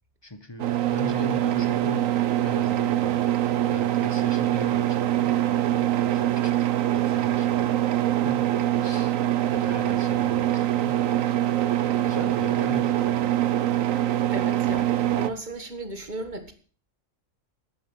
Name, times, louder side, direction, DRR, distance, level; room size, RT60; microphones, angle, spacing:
voice 1, 0.2-3.2 3.7-7.8 8.2-9.2 9.5-11.0 12.0-13.2, left 3 dB, 20° left, 1.2 m, -40 dB
sound 1, 0.6-15.3, right 12 dB, 80° right, 1.2 m, -24 dB
voice 2, 14.3-16.5, right 2 dB, 35° right, 1.8 m, -35 dB
11.0 x 10.5 x 7.0 m
omnidirectional pair, 1.4 m